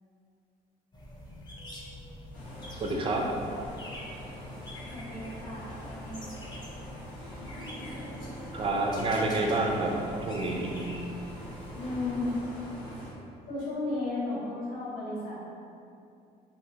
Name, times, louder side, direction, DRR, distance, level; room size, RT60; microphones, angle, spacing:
sound 1, 0.9-12.4, left 1 dB, 25° left, 0.5 m, -46 dB
sound 2, 2.3-13.1, equal, 90° left, 1.4 m, -43 dB
voice 1, 2.8-3.3 8.5-10.0 10.2-10.8, right 2 dB, 30° right, 1 dB, 0.4 m, -28 dB
voice 2, 4.9-6.2 11.7-12.3 13.5-15.4, left 2 dB, 55° left, -11 dB, 1.2 m, -34 dB
3.3 x 2.2 x 2.8 m, 2.6 s
cardioid pair, 110°, 17 cm